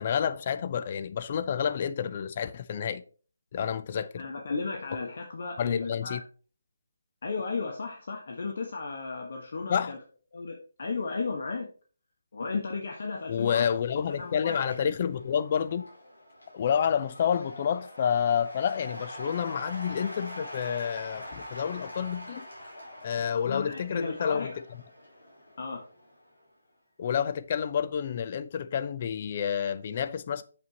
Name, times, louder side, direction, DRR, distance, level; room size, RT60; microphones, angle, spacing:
voice 1, 0.0-3.0 3.5-4.2 5.6-6.2 9.7-10.0 13.3-15.9 16.5-22.5 23.0-24.8 27.0-30.4, left 8 dB, 40° left, 0.6 m, -29 dB
voice 2, 3.9-6.2 7.2-10.0 10.3-11.7 12.3-13.7 14.1-14.6 23.4-24.6 25.6-25.8, left 4 dB, 60° left, 1.4 m, -34 dB
Cheering / Applause / Crowd, 13.0-26.4, left 1 dB, 90° left, 4.6 m, -45 dB
8.3 x 6.9 x 2.9 m
figure-of-eight pair, 155°, 0 cm